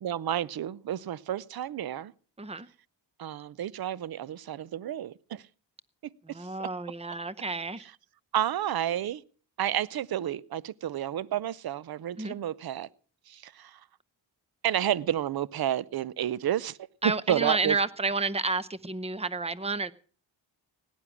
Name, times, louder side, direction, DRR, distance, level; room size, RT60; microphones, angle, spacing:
voice 1, 0.0-2.1 3.2-5.4 6.6-6.7 8.3-9.2 9.6-12.9 13.3-13.8 14.6-16.8 17.3-17.8, right 11 dB, 50° right, 0.7 m, -30 dB
voice 2, 6.2-7.9 12.2-12.4 17.0-19.9, right 3 dB, 15° right, 0.7 m, -30 dB
17.5 x 10.0 x 6.0 m
cardioid pair, 100°, 46 cm